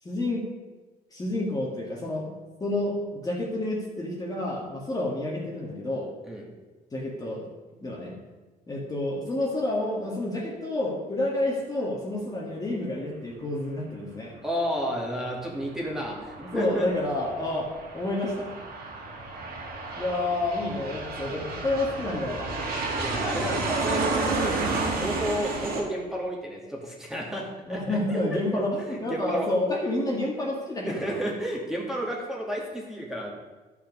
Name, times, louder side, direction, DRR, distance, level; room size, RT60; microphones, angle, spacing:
voice 1, 0.0-0.5 1.1-2.3 2.6-6.1 6.9-7.5 7.8-8.1 8.7-14.4 16.4-18.5 20.0-22.6 27.6-31.2, left 1 dB, 20° left, -3 dB, 1.9 m, -29 dB
voice 2, 14.4-16.9 23.0-29.5 30.8-33.3, equal, ahead, -2 dB, 2.3 m, -32 dB
Aircraft, 15.6-25.8, right 3 dB, 65° right, 2.3 m, -31 dB
12.0 x 5.9 x 5.4 m, 1.3 s
cardioid pair, 110°, 17 cm